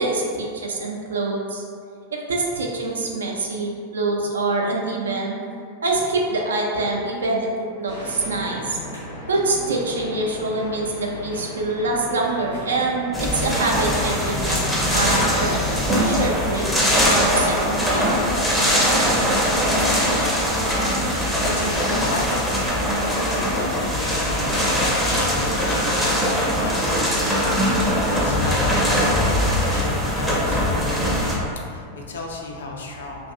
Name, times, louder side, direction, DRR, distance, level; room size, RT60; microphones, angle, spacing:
voice 1, 0.0-1.6 2.1-5.4 5.8-8.8 9.3-14.6 14.9-15.6 15.9-16.6 17.1-18.2, right 2 dB, 70° right, -1 dB, 0.4 m, -25 dB
sound 1, 7.9-17.7, left 1 dB, 90° left, 0.9 m, -35 dB
sound 2, 13.1-31.4, equal, ahead, 0.5 m, -21 dB
voice 2, 21.2-33.3, left 2 dB, 65° left, 0 dB, 0.3 m, -34 dB
2.6 x 2.5 x 2.3 m, 2.3 s
figure-of-eight pair, 90°, 0 cm